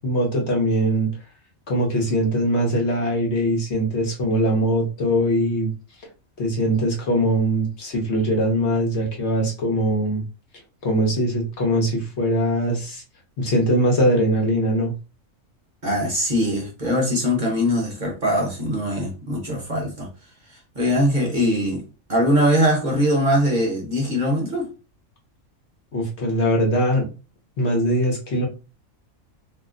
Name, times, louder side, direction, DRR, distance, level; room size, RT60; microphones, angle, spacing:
voice 1, 0.0-1.1 1.7-5.7 6.4-10.2 10.8-13.0 13.4-14.9 25.9-27.1 27.6-28.5, equal, 60° left, 0 dB, 1.1 m, -21 dB
voice 2, 15.8-20.1 20.5-21.8 22.1-24.7, equal, 40° right, -1 dB, 0.9 m, -21 dB
2.8 x 2.1 x 3.6 m, 0.32 s
omnidirectional pair, 1.3 m